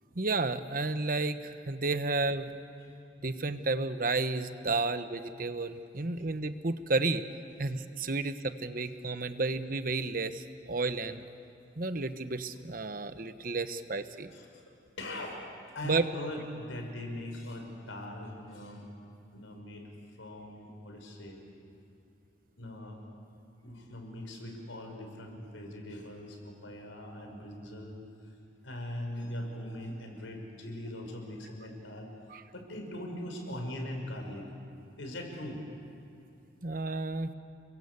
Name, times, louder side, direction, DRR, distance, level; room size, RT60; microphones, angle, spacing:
voice 1, 0.2-2.5 3.2-7.2 7.6-11.2 11.8-14.3 15.8-16.0 32.3-32.4 36.6-37.3, right 3 dB, 45° right, 10 dB, 1.0 m, -32 dB
voice 2, 15.0-15.4 15.7-18.8 19.3-19.9 20.2-21.4 22.6-23.0 23.6-28.0 28.6-32.1 32.5-34.5 35.0-35.6, left 1 dB, 90° left, 3 dB, 5.3 m, -41 dB
30.0 x 22.0 x 8.3 m, 2.7 s
head